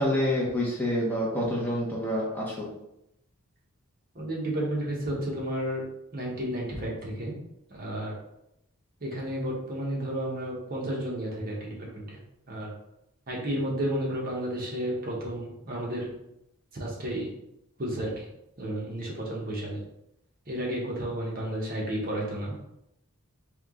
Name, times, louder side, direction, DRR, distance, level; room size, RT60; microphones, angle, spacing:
voice 1, 0.0-2.7, left 1 dB, 10° left, -5 dB, 0.8 m, -27 dB
voice 2, 4.1-5.8 6.1-7.3 7.7-8.2 9.0-12.2 12.5-12.7 13.3-16.1 16.7-17.3 17.8-18.2 18.6-19.8 20.5-22.5, right 1 dB, 40° right, -3 dB, 1.0 m, -32 dB
3.5 x 2.9 x 3.6 m, 0.82 s
head